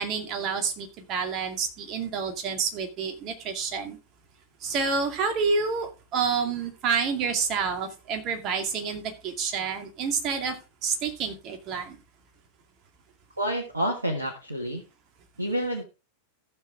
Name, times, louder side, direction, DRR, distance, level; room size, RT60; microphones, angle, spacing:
voice 1, 0.0-4.0 4.6-10.6 10.8-12.0, right 5 dB, 35° right, 5 dB, 2.2 m, -28 dB
voice 2, 13.4-14.8 15.4-15.8, equal, 80° right, 2 dB, 1.6 m, -28 dB
15.0 x 6.3 x 3.6 m, 0.30 s
figure-of-eight pair, 90°, 0 cm